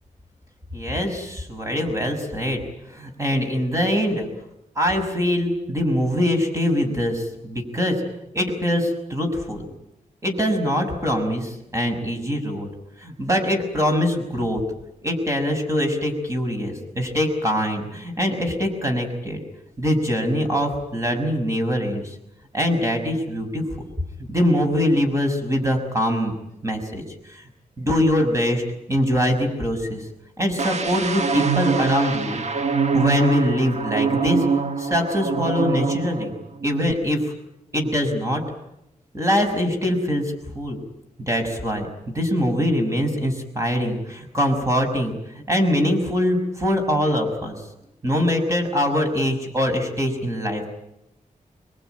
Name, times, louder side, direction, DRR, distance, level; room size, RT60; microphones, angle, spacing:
voice 1, 0.7-2.6 2.9-4.3 4.8-8.0 8.3-9.7 10.2-12.7 13.0-14.6 15.0-19.4 19.8-22.2 22.5-23.8 24.3-26.3 26.6-27.0 27.3-27.4 27.8-28.6 28.9-30.1 30.4-32.4 32.9-34.5 34.8-36.3 36.6-37.3 37.7-38.4 39.1-40.8 41.3-47.7 48.0-50.6, equal, 20° right, 4 dB, 6.0 m, -23 dB
sound 1, 30.6-36.3 36.6-36.9, right 4 dB, 55° right, 1.2 m, -24 dB
26.5 x 21.5 x 9.2 m, 0.84 s
wide cardioid pair, 135°, 14 cm